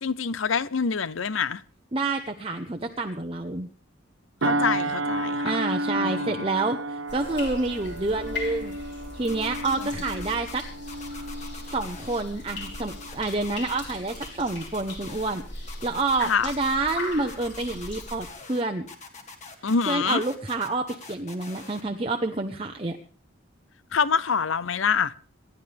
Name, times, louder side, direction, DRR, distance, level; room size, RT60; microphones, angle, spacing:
voice 1, 0.0-1.6 4.4-5.5 5.9-6.4 16.2-16.5 19.6-20.2 23.9-25.1, left 6 dB, 70° left, 0.6 m, -26 dB
voice 2, 1.9-3.7 5.4-8.8 9.2-10.7 11.7-18.9 19.9-23.0, right 3 dB, 25° right, 0.9 m, -28 dB
sound 1, 4.4-13.3 13.7-13.9, right 1 dB, 75° right, 1.0 m, -32 dB
sound 2, 7.1-18.3, left 2 dB, 55° left, 4.5 m, -39 dB
sound 3, 9.3-10.5 10.9-12.2 12.5-13.7 14.1-15.4 15.7-16.9 17.3-18.6 18.9-21.8, left 4 dB, 35° left, 1.8 m, -43 dB
27.0 x 11.5 x 3.4 m
head